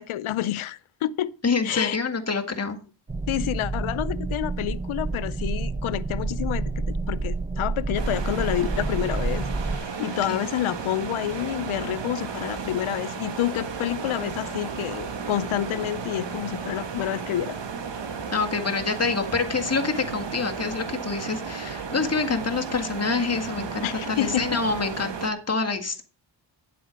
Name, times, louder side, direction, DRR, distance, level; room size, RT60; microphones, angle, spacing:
voice 1, 0.0-1.3 1.6-2.0 3.3-6.7 7.1-17.6 23.8-24.6, left 13 dB, 90° left, 0.6 m, -28 dB
voice 2, 1.4-2.8 10.0-10.4 18.3-26.0, left 4 dB, 30° left, 1.8 m, -27 dB
sound 1, 3.1-9.8, right 3 dB, 15° right, 0.7 m, -29 dB
sound 2, 7.9-25.3, right 5 dB, 65° right, 1.9 m, -34 dB
10.5 x 7.8 x 5.1 m
cardioid pair, 70°, 47 cm